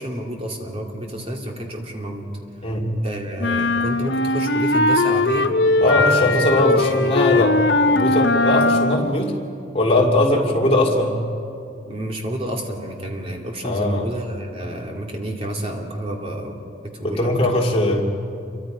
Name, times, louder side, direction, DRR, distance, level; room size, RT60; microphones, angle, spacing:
voice 1, 0.0-2.3 3.0-6.2 6.6-7.5 10.3-10.5 11.9-16.6 16.8-17.4, right 1 dB, 30° right, 0 dB, 2.7 m, -30 dB
sound 1, 3.4-9.1, left 2 dB, 65° left, 0.7 m, -19 dB
voice 2, 5.8-7.6 7.9-9.3 9.7-11.2 13.6-14.1 17.0-18.0, left 1 dB, 30° left, -1 dB, 2.4 m, -20 dB
28.5 x 24.0 x 5.2 m, 2.6 s
head